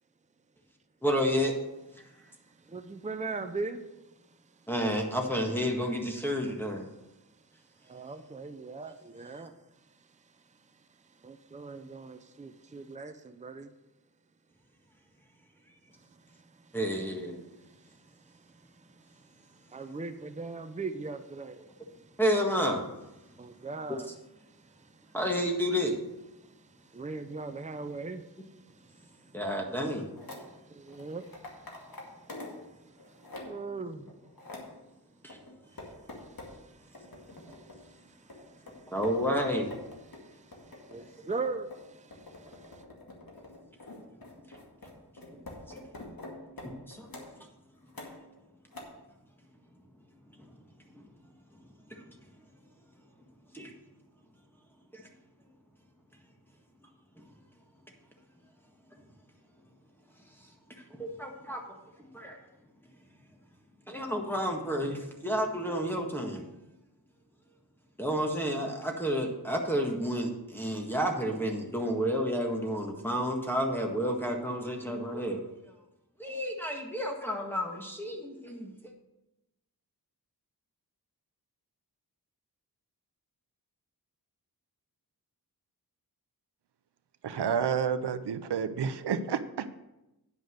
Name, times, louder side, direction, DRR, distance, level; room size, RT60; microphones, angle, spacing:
voice 1, 1.0-1.5 4.7-6.8 16.7-17.4 22.2-22.9 23.9-24.0 25.1-26.0 29.3-30.1 35.2-35.4 38.9-39.7 45.7-45.8 46.9-47.1 50.4-50.5 50.9-51.1 51.9-52.0 53.5-53.7 54.9-55.0 57.2-57.3 60.9-62.4 63.9-66.4 68.0-75.4 76.2-78.9, equal, 5° left, 1.7 m, -30 dB
voice 2, 2.7-3.8 7.9-9.5 11.2-13.7 16.6-16.7 19.1-19.2 19.7-21.6 23.3-24.1 26.9-28.3 29.0-29.3 30.4-31.9 33.5-34.1 36.1-38.9 40.1-42.8, right 3 dB, 20° right, 0.6 m, -40 dB
sound 1, 30.2-30.5 30.9-32.6 33.0-33.7 34.1-34.7 35.3-36.6 36.9-37.8 38.3-47.3 47.9-48.4 48.7-48.8, left 2 dB, 60° left, 2.1 m, -46 dB
voice 3, 87.2-89.7, right 7 dB, 80° right, 0.7 m, -30 dB
9.6 x 5.2 x 6.4 m
cardioid pair, 50°, 40 cm